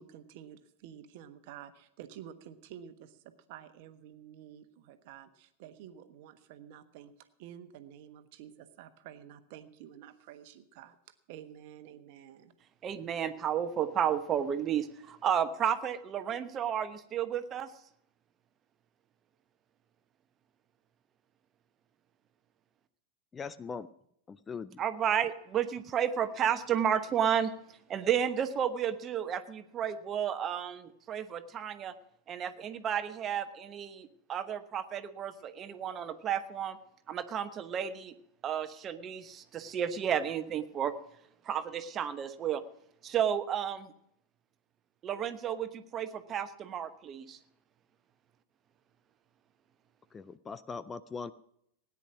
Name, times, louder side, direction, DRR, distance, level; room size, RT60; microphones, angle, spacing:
voice 1, 0.0-12.5, right 10 dB, 50° right, 10 dB, 1.2 m, -50 dB
voice 2, 12.8-17.7 24.8-27.5 27.9-31.9 32.3-36.8 37.1-38.1 38.4-41.0 41.4-42.6 43.0-43.9 45.0-47.4, right 9 dB, 30° right, 10 dB, 1.1 m, -32 dB
voice 3, 23.3-23.9 24.3-24.8 50.1-51.3, left 5 dB, 20° left, 15 dB, 0.5 m, -40 dB
17.5 x 9.9 x 6.1 m, 0.74 s
figure-of-eight pair, 90°, 0 cm